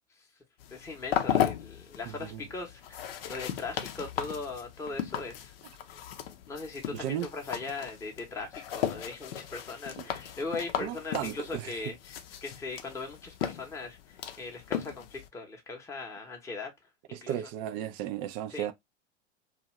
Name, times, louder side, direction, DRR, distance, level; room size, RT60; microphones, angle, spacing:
sound 1, 0.6-15.3, left 10 dB, 55° left, 0.6 m, -36 dB
voice 1, 0.7-5.5 6.5-14.0 14.4-16.7 17.1-17.4 18.5-18.7, left 3 dB, 10° left, 0.8 m, -39 dB
voice 2, 2.1-2.5 6.9-7.3 10.0-10.1 10.8-11.8 17.1-18.7, right 11 dB, 35° right, 0.4 m, -35 dB
2.6 x 2.4 x 3.0 m
hypercardioid pair, 95°, 35 cm